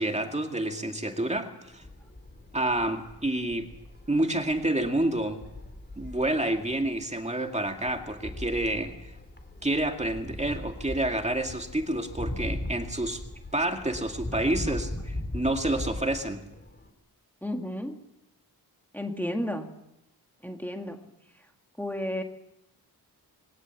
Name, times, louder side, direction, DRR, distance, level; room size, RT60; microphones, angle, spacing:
voice 1, 0.0-1.8 2.5-3.7 4.1-5.4 6.0-8.9 9.6-13.2 13.5-16.4, right 1 dB, 15° right, 4 dB, 2.2 m, -28 dB
sound 1, 1.6-16.9, left 1 dB, 25° left, 3.2 m, -40 dB
voice 2, 17.4-18.0 18.9-19.7 20.4-21.0 21.8-22.2, left 1 dB, 5° left, 3 dB, 1.9 m, -32 dB
22.0 x 18.0 x 7.3 m, 0.85 s
wide cardioid pair, 100°, 39 cm